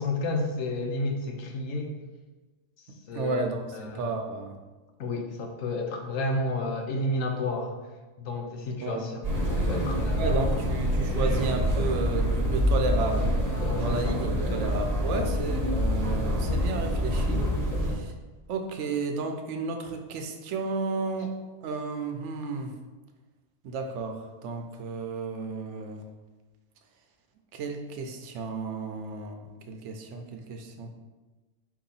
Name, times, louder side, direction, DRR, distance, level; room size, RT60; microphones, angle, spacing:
voice 1, 0.0-1.9 3.1-4.1 5.0-7.7 8.2-9.2 9.5-10.8 13.6-14.2 15.1-15.3 17.7-17.8, left 2 dB, 90° left, 3 dB, 1.1 m, -31 dB
voice 2, 3.1-4.6 8.8-9.1 10.2-13.4 13.7-17.5 17.7-18.1 18.5-21.3 21.6-22.7 23.6-26.1 27.5-30.9, right 3 dB, 70° right, 5 dB, 0.8 m, -33 dB
sound 1, 9.2-17.9, equal, 35° right, 0.8 m, -26 dB
4.5 x 2.8 x 4.0 m, 1.2 s
omnidirectional pair, 1.3 m